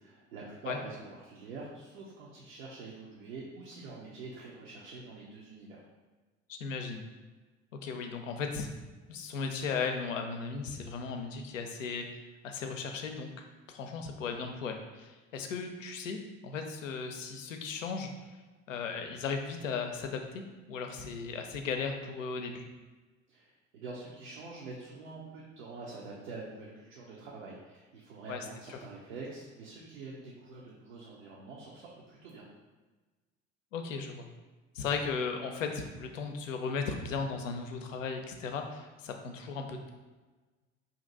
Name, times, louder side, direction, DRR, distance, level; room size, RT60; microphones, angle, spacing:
voice 1, 0.0-5.8 23.3-32.5, right 3 dB, 70° right, -5 dB, 0.7 m, -46 dB
voice 2, 6.5-7.1 7.8-8.7 9.1-13.3 13.7-18.1 18.7-20.4 20.7-22.7 28.3-28.8 33.7-34.3 34.7-39.9, left 5 dB, 80° left, 4 dB, 0.5 m, -36 dB
2.8 x 2.5 x 3.8 m, 1.3 s
figure-of-eight pair, 60°, 38 cm